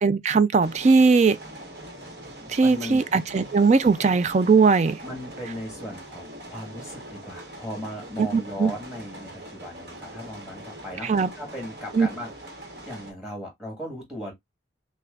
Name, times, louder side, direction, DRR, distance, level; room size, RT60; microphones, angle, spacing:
voice 1, 0.0-1.4 2.5-5.0 8.2-8.7 11.0-11.3 11.9-12.1, right 4 dB, 35° right, 0.3 m, -19 dB
sound 1, 0.6-13.1, right 1 dB, 55° right, 1.2 m, -42 dB
voice 2, 2.6-3.0 5.0-12.3 12.6-14.3, left 1 dB, 5° right, 1.7 m, -37 dB
5.9 x 2.2 x 2.4 m
head